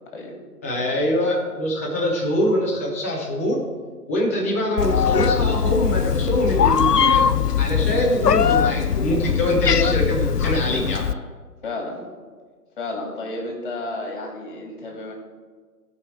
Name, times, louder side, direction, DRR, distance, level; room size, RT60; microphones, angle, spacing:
voice 1, 0.6-3.6 4.1-7.3 7.6-11.1, equal, 10° left, -4 dB, 0.8 m, -23 dB
Meow, 4.8-11.1, left 7 dB, 85° left, 0.6 m, -20 dB
voice 2, 11.6-12.0 12.8-15.1, left 2 dB, 35° left, 0 dB, 2.7 m, -31 dB
16.0 x 5.4 x 4.8 m, 1.5 s
figure-of-eight pair, 150°, 47 cm